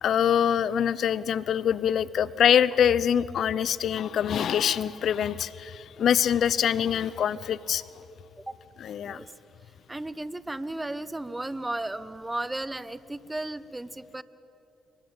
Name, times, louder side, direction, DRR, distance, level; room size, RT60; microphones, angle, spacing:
voice 1, 0.0-7.8 8.8-9.2, left 9 dB, 65° left, 19 dB, 0.7 m, -24 dB
voice 2, 9.9-14.2, right 2 dB, 15° right, 16 dB, 1.2 m, -34 dB
28.0 x 23.0 x 9.0 m, 2.9 s
hypercardioid pair, 50°, 0 cm